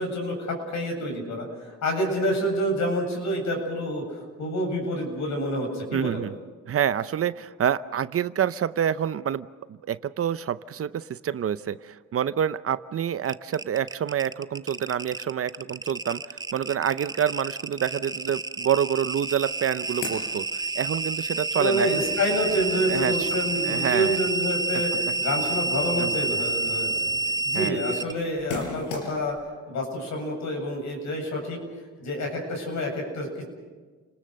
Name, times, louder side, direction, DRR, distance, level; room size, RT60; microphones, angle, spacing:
voice 1, 0.0-4.0 4.4-6.2 21.6-24.9 25.2-27.1 27.4-29.4 29.7-31.6 32.0-33.4, equal, 65° left, 2 dB, 8.0 m, -28 dB
voice 2, 5.9-6.3 6.7-21.9 22.9-23.3 23.6-24.2 26.0-26.2 27.5-27.8, right 9 dB, 50° right, 15 dB, 0.7 m, -27 dB
sound 1, 13.2-28.1, right 3 dB, 15° right, 0.6 m, -29 dB
sound 2, 19.1-19.2 19.4-21.1 21.5-29.4, left 4 dB, 90° left, 5.1 m, -41 dB
30.0 x 19.5 x 6.6 m, 1.4 s
cardioid pair, 90°, 30 cm